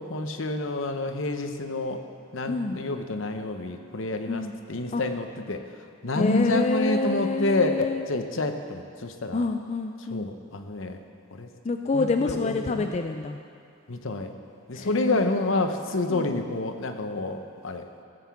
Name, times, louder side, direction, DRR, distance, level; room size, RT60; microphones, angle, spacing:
voice 1, 0.0-2.0 2.3-5.6 6.0-9.5 10.1-11.0 11.3-11.5 11.9-12.9 13.9-14.3 14.7-17.4 17.6-17.8, left 2 dB, 70° left, 6 dB, 0.9 m, -28 dB
voice 2, 6.1-8.1 9.3-10.3 11.6-13.4 14.7-15.3 16.1-16.3, left 3 dB, 35° left, 5 dB, 0.4 m, -27 dB
16.0 x 5.9 x 7.1 m, 2.3 s
head